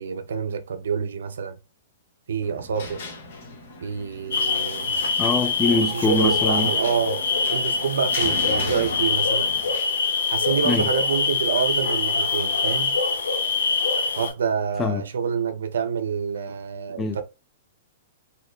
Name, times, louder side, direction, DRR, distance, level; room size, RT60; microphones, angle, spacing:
voice 1, 0.0-1.6 2.3-3.1 3.8-5.0 5.7-7.2 7.5-9.5 10.3-13.0 14.2-17.2, right 6 dB, 75° right, 0.4 m, -27 dB
sound 1, 2.4-9.7, left 2 dB, 60° left, 1.0 m, -39 dB
sound 2, 4.3-14.3, left 4 dB, 80° left, 0.7 m, -24 dB
voice 2, 5.2-6.7 10.6-10.9 14.8-15.0 17.0-17.2, left 4 dB, 20° left, 0.3 m, -24 dB
2.9 x 2.1 x 2.2 m
hypercardioid pair, 125°, 0 cm